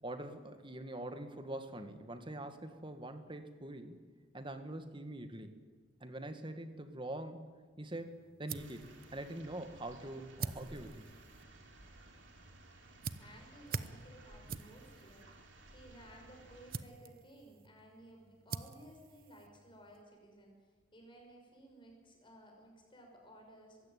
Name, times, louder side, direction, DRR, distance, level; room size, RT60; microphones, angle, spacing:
voice 1, 0.0-4.0 4.3-5.6 6.0-7.4 7.8-8.1 8.4-11.1, right 1 dB, 25° right, 8 dB, 1.9 m, -44 dB
sound 1, 7.9-20.0, right 5 dB, 50° right, 0.9 m, -48 dB
sound 2, 8.5-16.8, right 2 dB, 70° right, 3.3 m, -57 dB
voice 2, 13.1-23.9, right 1 dB, 25° left, 1 dB, 6.1 m, -57 dB
22.5 x 16.0 x 9.3 m, 1.5 s
head